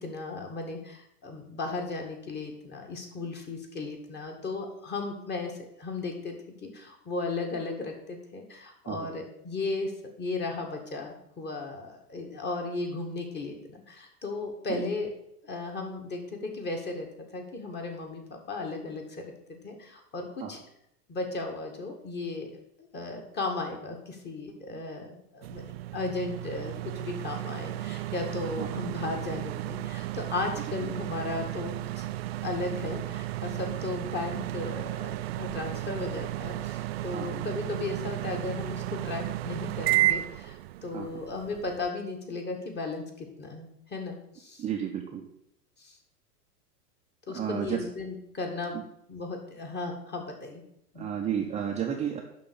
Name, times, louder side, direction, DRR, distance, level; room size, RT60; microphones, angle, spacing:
voice 1, 0.0-6.3 6.6-9.9 10.2-15.1 15.4-19.2 19.5-20.6 21.1-22.5 22.8-32.0 32.4-44.6 45.8-46.0 47.3-48.7 49.1-50.6 50.9-51.1, left 3 dB, 20° left, 2 dB, 1.9 m, -35 dB
sound 1, 25.4-41.9, right 15 dB, 45° right, 0.4 m, -33 dB
voice 2, 44.6-45.2 47.3-47.8 48.7-48.8 51.0-52.2, right 8 dB, 15° right, 0 dB, 0.8 m, -32 dB
11.0 x 3.8 x 7.0 m, 0.76 s
figure-of-eight pair, 95°, 47 cm